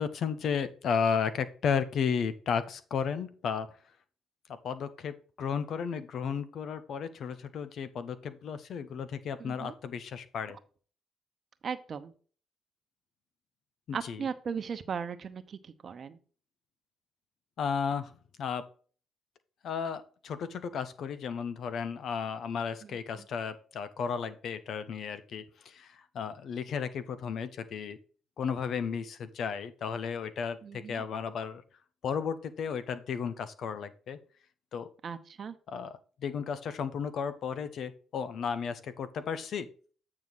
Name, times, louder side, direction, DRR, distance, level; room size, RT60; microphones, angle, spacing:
voice 1, 0.0-3.7 4.5-10.6 13.9-14.2 17.6-18.1 18.4-18.7 19.6-25.9 26.1-28.0 28.4-31.6 32.0-34.2 34.7-34.9 35.7-39.7, left 6 dB, 65° left, 13 dB, 0.8 m, -34 dB
voice 2, 9.4-9.8 11.6-12.1 13.9-16.2 22.8-23.2 30.6-31.0 35.0-35.5, right 6 dB, 50° right, 10 dB, 0.9 m, -38 dB
8.8 x 5.0 x 4.0 m, 0.40 s
supercardioid pair, 65°, 0 cm